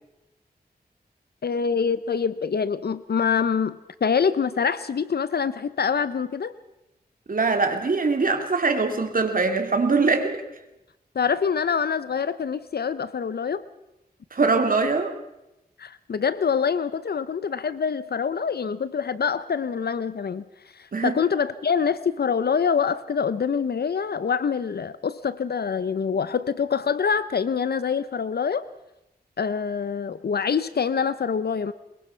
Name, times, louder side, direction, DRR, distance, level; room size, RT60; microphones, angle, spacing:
voice 1, 1.4-6.5 11.1-13.6 15.8-20.4 20.7-28.6 29.4-31.7, left 6 dB, 75° left, 15 dB, 0.7 m, -25 dB
voice 2, 7.3-10.4 14.3-15.1 20.9-21.2, right 4 dB, 60° right, 5 dB, 2.6 m, -22 dB
22.5 x 22.0 x 5.7 m, 0.93 s
wide cardioid pair, 95°, 16 cm